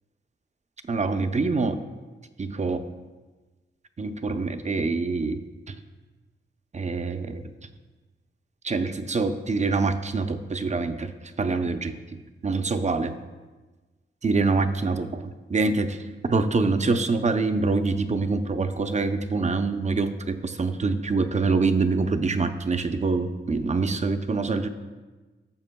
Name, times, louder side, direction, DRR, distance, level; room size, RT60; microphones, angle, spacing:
voice 1, 0.9-1.8 2.4-2.8 4.0-5.4 5.7-5.8 6.7-7.4 8.6-11.1 11.4-13.2 14.2-16.0 16.2-24.7, right 3 dB, 35° right, 9 dB, 0.6 m, -25 dB
15.0 x 6.7 x 2.2 m, 1.3 s
wide cardioid pair, 85°, 21 cm